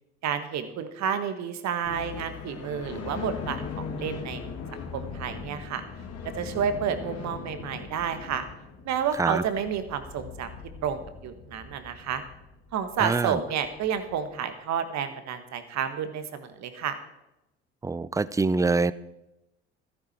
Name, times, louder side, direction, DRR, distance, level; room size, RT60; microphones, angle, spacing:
voice 1, 0.2-4.4 4.9-5.8 6.3-8.4 8.8-10.6 10.8-12.2 12.7-17.0, right 8 dB, 55° right, 10 dB, 1.5 m, -30 dB
sound 1, 1.8-14.3, left 5 dB, 50° left, 2.1 m, -40 dB
voice 2, 13.0-13.4 17.8-18.9, right 3 dB, 10° right, 18 dB, 0.4 m, -25 dB
13.0 x 11.5 x 4.4 m, 0.93 s
hypercardioid pair, 65°, 33 cm